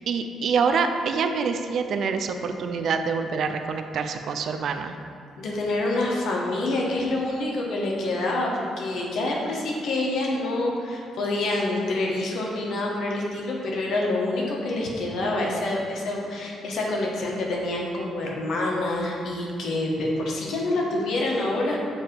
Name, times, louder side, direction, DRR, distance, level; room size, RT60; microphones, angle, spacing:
voice 1, 0.1-5.0, right 5 dB, 65° right, 7 dB, 0.4 m, -26 dB
voice 2, 5.4-21.8, left 2 dB, 70° left, -2 dB, 1.1 m, -27 dB
7.4 x 2.8 x 5.1 m, 2.4 s
cardioid pair, 90°, 0 cm